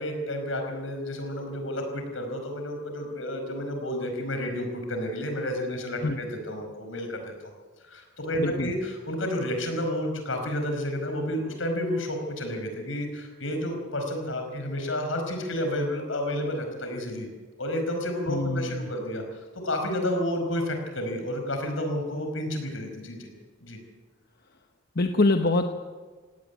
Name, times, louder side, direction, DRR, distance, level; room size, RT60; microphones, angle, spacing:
voice 1, 0.0-7.5 7.8-17.3 17.6-23.3 23.6-23.8, left 1 dB, 80° left, 4 dB, 5.0 m, -31 dB
voice 2, 8.4-8.7 18.3-18.9 24.9-25.7, left 2 dB, 55° left, 5 dB, 1.1 m, -24 dB
18.0 x 17.5 x 9.4 m, 1.4 s
head